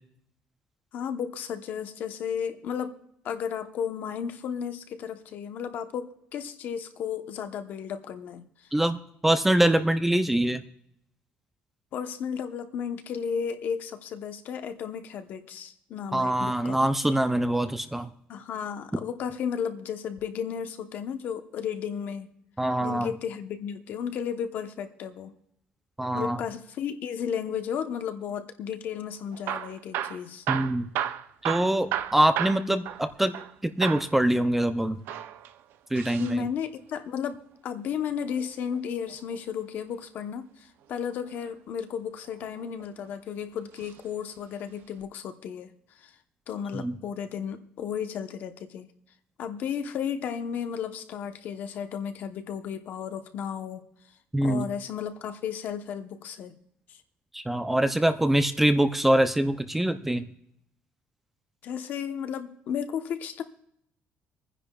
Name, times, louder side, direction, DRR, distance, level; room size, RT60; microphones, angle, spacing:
voice 1, 0.9-3.0 3.2-8.4 11.9-16.8 18.3-22.3 22.8-25.3 26.1-30.4 36.2-45.7 46.0-46.1 46.5-48.9 49.4-53.8 54.4-56.5 56.9-57.0 61.6-63.4, left 7 dB, 55° left, 8 dB, 0.9 m, -34 dB
voice 2, 9.2-10.6 16.1-18.1 22.6-23.1 26.0-26.4 30.5-30.9 31.4-33.3 33.6-35.0 35.9-36.4 46.7-46.9 54.3-54.7 57.3-60.2, right 1 dB, 5° right, 9 dB, 0.4 m, -24 dB
Hammer / Drill, 29.3-33.5 33.8-34.1 34.9-36.4 38.1-39.4 41.1-41.5 42.2-43.1 43.8-44.0 44.3-44.4 45.0-45.1, right 10 dB, 80° right, 0.6 m, -34 dB
26.0 x 10.0 x 2.3 m, 0.74 s
cardioid pair, 175°, 4 cm